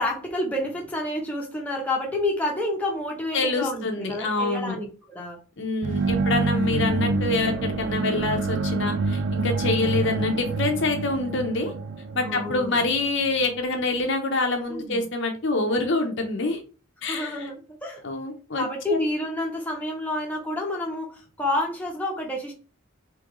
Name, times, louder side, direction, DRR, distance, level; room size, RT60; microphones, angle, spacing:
voice 1, 0.0-5.4 12.2-12.9 14.7-15.1 17.1-18.0 18.5-22.5, left 1 dB, 5° left, -1 dB, 0.8 m, -29 dB
voice 2, 3.3-4.8 5.6-11.7 12.1-16.6 17.0-17.5 18.0-19.0, left 3 dB, 55° left, 4 dB, 0.8 m, -26 dB
sound 1, 5.8-13.6, right 3 dB, 55° right, 0.3 m, -27 dB
3.7 x 3.0 x 3.0 m, 0.36 s
head